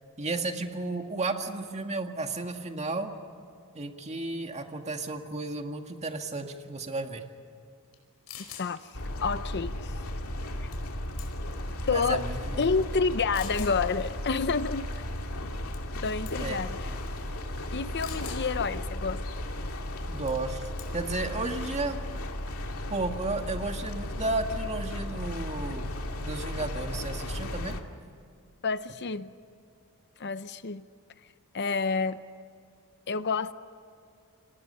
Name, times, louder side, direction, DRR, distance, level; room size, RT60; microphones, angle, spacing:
voice 1, 0.2-3.1 3.7-7.2 11.9-12.6 16.4-16.6 20.1-20.7 20.9-22.0 22.9-27.8, right 2 dB, 30° right, 5 dB, 1.9 m, -33 dB
sound 1, 7.9-8.0 8.3-8.7 10.7-10.9 11.2-11.6 12.3-12.4 13.3-13.8 15.7-16.0 16.3-16.5 18.0-18.4 20.3-20.5 20.8-21.1, left 9 dB, 90° left, 4.8 m, -44 dB
voice 2, 8.4-8.8 9.2-9.9 10.6-10.7 11.9-12.2 12.6-14.9 16.0-17.0 17.7-19.2 28.6-29.3 30.2-30.8 31.5-32.2 33.1-33.5, left 4 dB, 50° left, 13 dB, 0.8 m, -29 dB
sound 2, 8.9-27.8, left 1 dB, 70° left, 2.3 m, -35 dB
30.0 x 27.0 x 5.7 m, 2.5 s
head